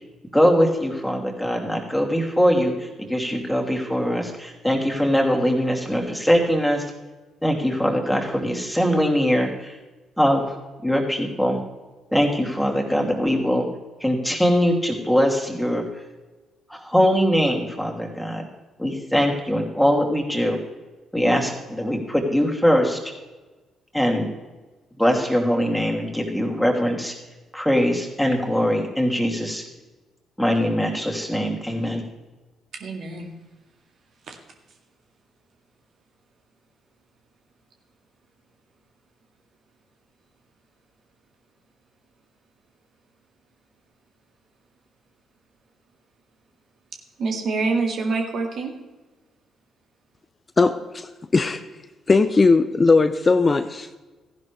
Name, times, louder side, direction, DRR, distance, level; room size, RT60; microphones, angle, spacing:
voice 1, 0.3-6.8 7.4-9.8 10.2-10.4 10.8-11.6 12.1-13.6 14.0-15.8 16.7-18.4 18.8-20.6 21.1-23.0 23.9-24.3 25.0-27.1 27.5-29.6 30.4-32.0, equal, ahead, 1 dB, 2.7 m, -22 dB
voice 2, 32.7-33.3 34.3-34.4 47.2-48.7, right 3 dB, 60° right, 3 dB, 1.9 m, -26 dB
voice 3, 50.6-51.6 52.1-53.9, left 3 dB, 35° left, 10 dB, 0.6 m, -18 dB
15.0 x 11.0 x 3.4 m, 1.2 s
hypercardioid pair, 45°, 0 cm